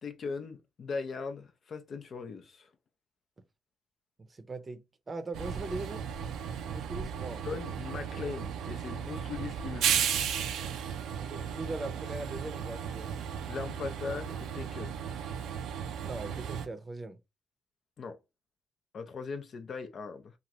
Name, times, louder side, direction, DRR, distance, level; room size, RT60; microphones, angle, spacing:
voice 1, 0.0-2.7 7.4-10.0 13.5-15.2 18.0-18.2 18.9-20.3, left 5 dB, 50° left, 0.6 m, -39 dB
voice 2, 4.2-6.1 6.6-7.4 11.2-13.1 16.0-17.2, right 2 dB, 30° right, 0.7 m, -40 dB
Train, 5.3-16.7, right 8 dB, 85° right, 0.5 m, -35 dB
2.8 x 2.5 x 3.0 m
cardioid pair, 90°, 0 cm